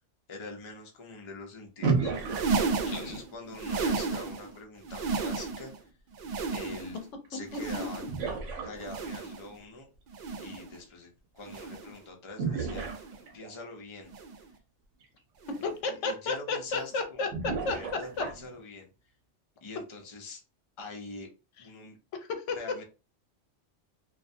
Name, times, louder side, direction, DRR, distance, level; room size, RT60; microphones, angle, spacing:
voice 1, 0.3-2.1 2.8-5.7 6.5-7.0 7.3-8.0 8.6-9.9 10.4-12.9 13.3-14.1 16.0-17.3 17.7-18.9 19.6-20.4 20.8-21.3 21.6-22.0 22.5-22.8, left 3 dB, 35° left, 2 dB, 0.5 m, -44 dB
sound 1, 1.8-3.3 7.2-7.3 8.1-9.3 12.4-13.7 15.0-15.1 15.6-15.7 17.3-18.6, right 4 dB, 80° right, 1.0 m, -32 dB
sound 2, 2.1-4.5 4.8-5.8 6.1-7.1 7.5-8.3 8.8-9.5 10.1-10.8 11.4-12.0 12.7-13.3 14.1-14.5 15.4-15.7 16.7-16.9 18.1-18.2, right 4 dB, 60° right, 0.5 m, -34 dB
voice 2, 2.9-3.2 7.7-8.1 15.6-17.8 18.2-18.3 22.2-22.6, left 3 dB, 80° left, 6 dB, 0.9 m, -33 dB
2.4 x 2.2 x 2.5 m, 0.30 s
omnidirectional pair, 1.3 m